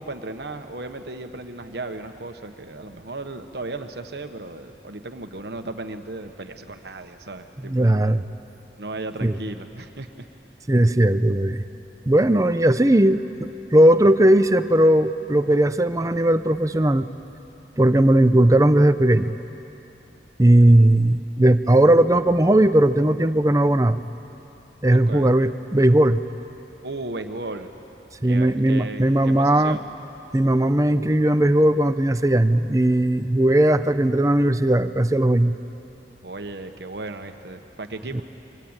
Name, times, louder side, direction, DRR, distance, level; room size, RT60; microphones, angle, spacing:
voice 1, 0.0-8.1 8.8-10.3 24.9-25.3 26.8-27.7 28.2-29.8 36.2-38.2, right 2 dB, 65° right, 6 dB, 1.3 m, -35 dB
voice 2, 7.6-8.2 9.2-9.4 10.7-11.6 12.1-13.2 13.7-17.1 17.8-19.3 20.4-24.0 24.8-26.2 28.2-29.8 30.3-35.5 38.1-38.2, right 1 dB, 20° right, 11 dB, 0.6 m, -18 dB
26.5 x 24.5 x 9.0 m, 2.9 s
head